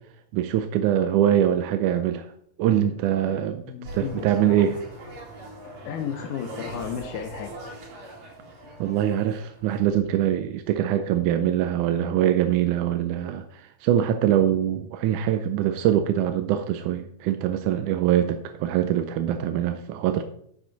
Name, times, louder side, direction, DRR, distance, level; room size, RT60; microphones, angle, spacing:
voice 1, 0.3-2.3 2.6-3.6 3.9-4.8 8.8-20.2, right 10 dB, 85° right, 7 dB, 2.1 m, -23 dB
voice 2, 3.6-4.7 5.6-7.5, left 8 dB, 85° left, 5 dB, 2.3 m, -34 dB
sound 1, 3.9-10.0, right 1 dB, 65° right, 3.3 m, -41 dB
11.5 x 7.0 x 4.0 m, 0.70 s
omnidirectional pair, 3.5 m